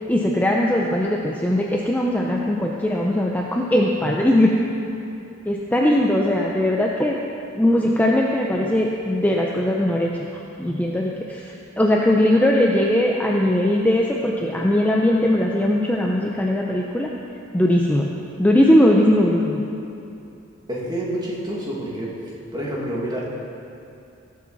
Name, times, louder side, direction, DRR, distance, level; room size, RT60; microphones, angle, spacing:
voice 1, 0.1-4.5 5.5-7.2 7.6-10.3 10.6-17.1 17.5-18.1 18.4-19.6, left 1 dB, 10° left, -2 dB, 0.6 m, -19 dB
voice 2, 20.7-22.1 22.5-23.3, right 1 dB, 20° right, -5 dB, 2.2 m, -28 dB
18.5 x 7.6 x 4.1 m, 2.6 s
head